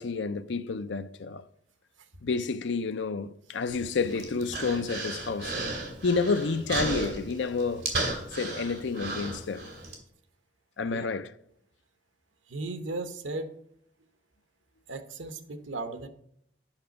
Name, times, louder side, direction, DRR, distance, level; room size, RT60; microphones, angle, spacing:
voice 1, 0.0-1.5 2.2-5.6 6.0-7.9 8.3-9.7 10.8-11.3, left 4 dB, 70° left, 0.5 m, -30 dB
Human voice, 3.7-9.9, right 2 dB, 60° right, 2.4 m, -35 dB
voice 2, 12.5-13.5 14.9-16.1, right 2 dB, 85° right, 1.0 m, -36 dB
8.9 x 5.9 x 5.2 m
head